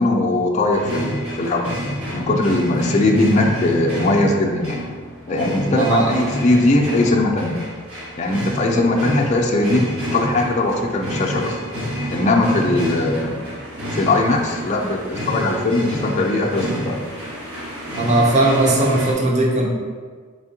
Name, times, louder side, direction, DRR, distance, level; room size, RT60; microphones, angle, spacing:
voice 1, 0.0-1.7 2.1-4.8 5.3-7.6 8.2-9.9 10.1-11.6 12.1-13.4 13.9-17.0, left 2 dB, 35° left, 0 dB, 0.4 m, -19 dB
sound 1, 0.7-19.1, equal, 90° right, 1.2 m, -28 dB
voice 2, 5.8-6.1 18.0-19.7, right 2 dB, 35° right, -1 dB, 0.6 m, -17 dB
4.3 x 3.5 x 2.7 m, 1.6 s
head